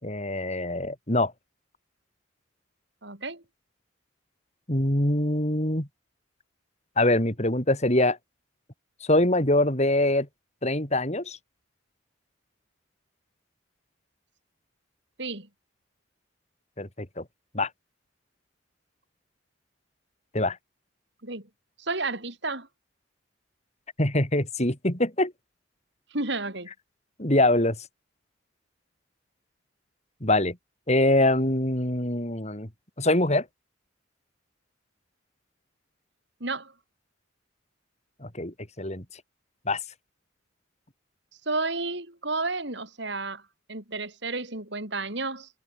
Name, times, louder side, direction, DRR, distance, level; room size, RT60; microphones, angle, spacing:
voice 1, 0.0-1.3 4.7-5.9 7.0-8.2 9.1-10.3 10.6-11.4 16.8-17.2 17.5-17.7 20.3-20.6 24.0-25.3 27.2-27.8 30.2-30.6 30.9-32.7 33.0-33.4 38.2-39.0 39.7-39.8, left 1 dB, 35° left, 4.9 m, -24 dB
voice 2, 3.0-3.4 15.2-15.5 21.2-21.5 21.8-22.7 26.1-26.7 36.4-36.7 41.5-43.4 43.7-45.5, right 3 dB, 60° right, 5.4 m, -31 dB
head